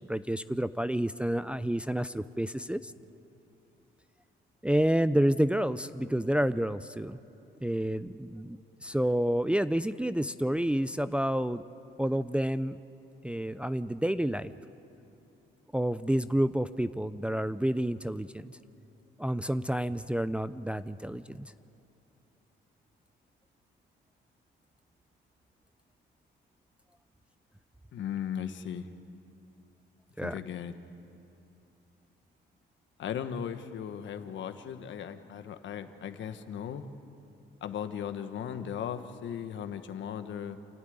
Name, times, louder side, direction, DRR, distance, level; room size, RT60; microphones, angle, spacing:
voice 1, 0.1-2.9 4.6-7.2 7.6-11.6 12.0-12.8 13.2-14.5 15.7-18.5 19.2-21.5 30.2-30.4, right 1 dB, 5° right, 12 dB, 0.5 m, -29 dB
voice 2, 27.9-28.9 30.2-30.7 33.0-36.8 37.6-40.6, left 8 dB, 70° left, 9 dB, 1.3 m, -37 dB
27.5 x 11.5 x 9.4 m, 2.8 s
cardioid pair, 90°, 20 cm